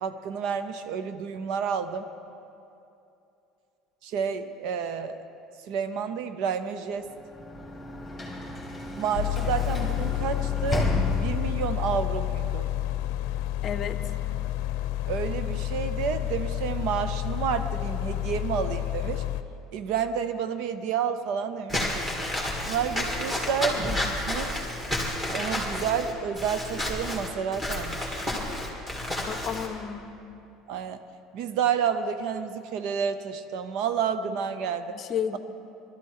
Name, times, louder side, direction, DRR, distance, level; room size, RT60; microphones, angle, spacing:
voice 1, 0.0-2.1 4.0-5.2 5.7-7.1 9.0-12.7 15.1-19.2 19.7-21.9 22.6-24.7 25.3-28.1 30.7-31.0 31.3-35.0, right 7 dB, 65° right, 10 dB, 0.6 m, -30 dB
Sliding door / Slam, 7.0-11.8, left 1 dB, 5° left, 2.0 m, -33 dB
sound 1, 9.1-19.4, left 14 dB, 80° left, 0.6 m, -30 dB
voice 2, 13.6-14.0 29.3-30.1 34.9-35.4, left 8 dB, 35° left, 11 dB, 0.7 m, -31 dB
Walk footsteps / Squeak, 21.7-29.7, left 1 dB, 10° right, 2.2 m, -30 dB
19.0 x 12.5 x 4.7 m, 2.7 s
cardioid pair, 155°, 0 cm